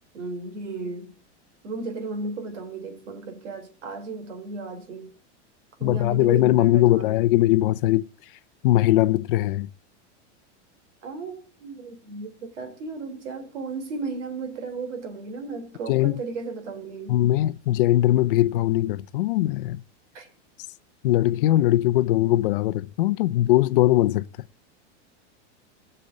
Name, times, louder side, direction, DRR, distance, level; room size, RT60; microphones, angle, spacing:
voice 1, 0.1-1.1 1.6-5.1 5.8-7.2 11.0-17.2 20.1-20.3, right 3 dB, 85° right, 3.7 m, -35 dB
voice 2, 5.8-8.0 8.6-9.7 15.9-16.2 17.1-19.8 21.0-24.3, left 15 dB, 50° left, 0.5 m, -20 dB
17.0 x 6.8 x 3.9 m
supercardioid pair, 180°, 35 cm